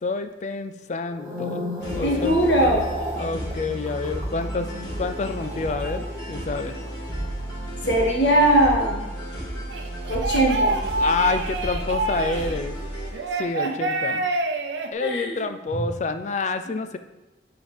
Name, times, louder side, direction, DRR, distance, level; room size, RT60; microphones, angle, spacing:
voice 1, 0.0-1.6 1.9-2.4 3.2-4.7 5.0-6.8 11.0-12.8 13.4-14.2 14.9-17.0, left 3 dB, 40° left, 9 dB, 0.4 m, -28 dB
sound 1, 1.0-9.4 9.7-10.1, left 1 dB, 20° right, 1.4 m, -37 dB
sound 2, 1.8-13.6, right 1 dB, 65° left, 2.3 m, -32 dB
voice 2, 2.0-2.9 7.9-9.1 10.1-10.8 15.0-15.3, right 1 dB, 85° left, -2 dB, 1.5 m, -20 dB
sound 3, 9.7-12.6 13.1-14.9, right 2 dB, 85° right, 0.7 m, -27 dB
8.8 x 4.9 x 3.4 m, 1.0 s
head